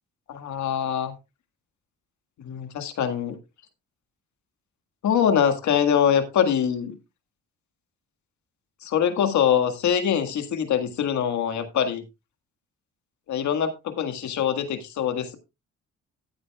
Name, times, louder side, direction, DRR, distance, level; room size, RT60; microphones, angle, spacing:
voice 1, 0.3-1.1 2.4-3.4 5.0-6.9 8.8-12.0 13.3-15.4, left 8 dB, 70° left, 8 dB, 1.8 m, -24 dB
15.0 x 8.9 x 2.3 m, 0.24 s
cardioid pair, 90°, 30 cm